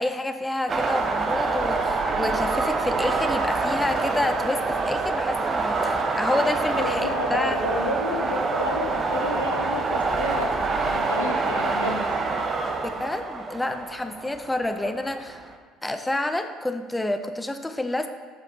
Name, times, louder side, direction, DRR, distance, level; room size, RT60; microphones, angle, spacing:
voice 1, 0.0-7.6 12.8-15.5 15.8-18.1, left 1 dB, 10° left, 8 dB, 0.5 m, -28 dB
sound 1, 0.7-15.5, right 3 dB, 35° right, 0.8 m, -26 dB
voice 2, 6.7-12.0, left 1 dB, 85° left, 2 dB, 0.9 m, -30 dB
8.5 x 4.9 x 4.7 m, 1.5 s
figure-of-eight pair, 60°, 0 cm